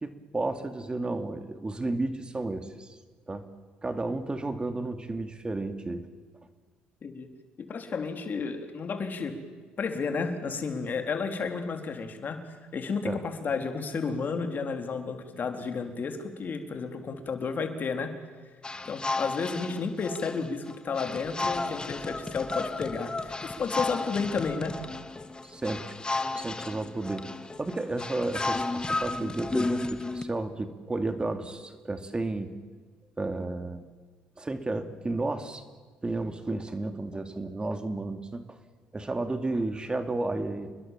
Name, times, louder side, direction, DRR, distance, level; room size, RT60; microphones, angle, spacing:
voice 1, 0.0-2.9 3.3-3.4 3.8-6.1 13.0-13.2 25.5-25.8 26.3-27.3 27.6-32.5 33.2-33.8 34.4-35.6 36.0-38.4 38.9-40.7, right 2 dB, 20° right, 7 dB, 2.6 m, -32 dB
voice 2, 7.6-9.4 9.8-12.4 12.7-18.1 18.9-24.7, left 5 dB, 45° left, 5 dB, 3.7 m, -32 dB
sound 1, 18.6-30.2, left 2 dB, 20° left, 1.9 m, -33 dB
28.5 x 21.5 x 7.6 m, 1.4 s
supercardioid pair, 60°, 4 cm